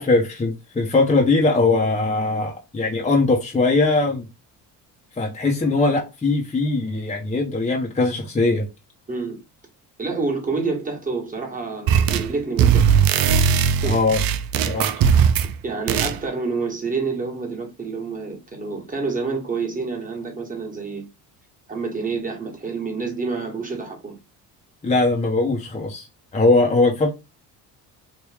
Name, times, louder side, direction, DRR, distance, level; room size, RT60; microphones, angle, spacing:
voice 1, 0.0-4.2 5.2-8.7 13.8-14.2 14.7-14.9 24.8-26.1 26.3-27.1, left 3 dB, 15° left, 0.9 m, -20 dB
voice 2, 9.1-9.4 10.0-12.9 13.4-14.0 15.6-21.0 21.7-24.2, right 4 dB, 20° right, 1.5 m, -28 dB
sound 1, 11.9-12.3 12.6-15.5 15.9-16.2, right 7 dB, 60° right, 0.5 m, -18 dB
3.1 x 2.6 x 3.4 m
supercardioid pair, 90°, 41 cm